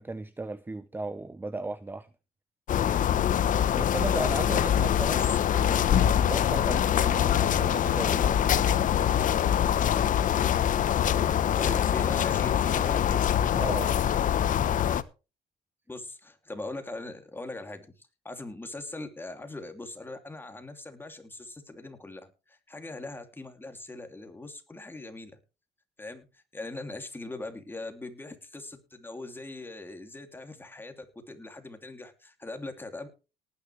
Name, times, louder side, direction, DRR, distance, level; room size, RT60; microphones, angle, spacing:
voice 1, 0.0-2.1 3.8-8.9 13.5-13.9, right 2 dB, 10° right, 0.7 m, -36 dB
sound 1, 2.7-15.0, left 10 dB, 50° left, 1.0 m, -24 dB
voice 2, 5.1-5.8 11.5-13.2 15.9-25.3 26.0-33.1, left 2 dB, 10° left, 2.8 m, -41 dB
18.5 x 9.8 x 3.3 m
cardioid pair, 110°, 17 cm